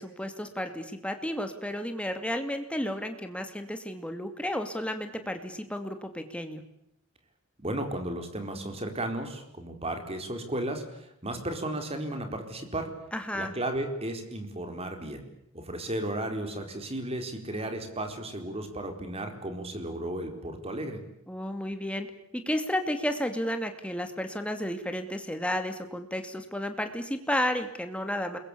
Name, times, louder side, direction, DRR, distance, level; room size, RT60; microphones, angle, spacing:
voice 1, 0.0-6.6 13.1-13.5 21.3-22.1 22.3-28.4, left 1 dB, 5° left, 7 dB, 2.5 m, -32 dB
voice 2, 7.6-12.9 13.3-15.2 15.5-21.0, right 1 dB, 30° right, 6 dB, 4.5 m, -34 dB
29.0 x 22.0 x 8.6 m, 0.79 s
head